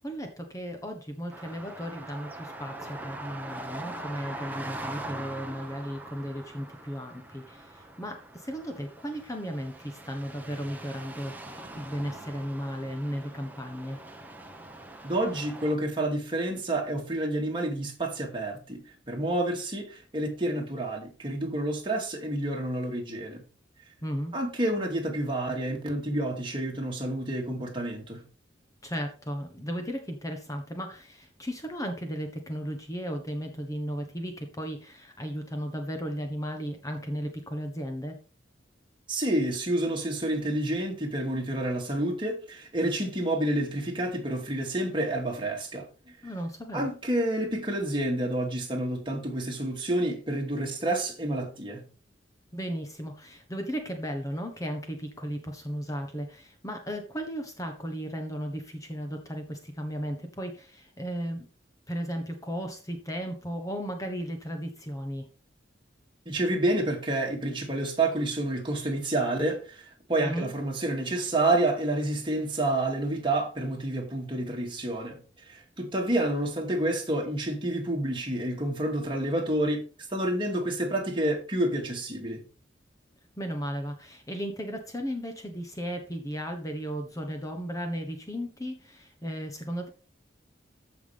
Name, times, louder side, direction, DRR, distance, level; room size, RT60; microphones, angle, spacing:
voice 1, 0.0-14.0 24.0-24.4 28.8-38.2 46.2-46.9 52.5-61.5 61.9-65.3 70.2-70.5 83.4-89.9, equal, 20° left, 1.3 m, -35 dB
sound 1, 1.3-15.8, right 1 dB, 10° right, 1.2 m, -42 dB
voice 2, 15.0-18.8 19.1-23.4 24.3-28.2 39.1-45.9 46.7-51.8 66.3-75.2 75.5-79.8 80.1-82.4, right 1 dB, 25° right, 2.7 m, -29 dB
14.5 x 5.9 x 3.5 m
head